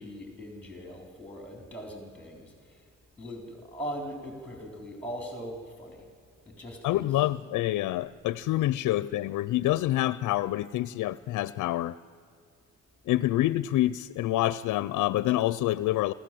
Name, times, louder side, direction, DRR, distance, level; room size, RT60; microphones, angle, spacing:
voice 1, 0.0-2.8 3.2-6.0 6.5-7.1, equal, 5° left, 2 dB, 3.9 m, -40 dB
voice 2, 6.8-12.0 13.1-16.1, left 15 dB, 80° left, 18 dB, 0.5 m, -27 dB
27.0 x 13.5 x 7.6 m, 2.3 s
cardioid pair, 90°, 30 cm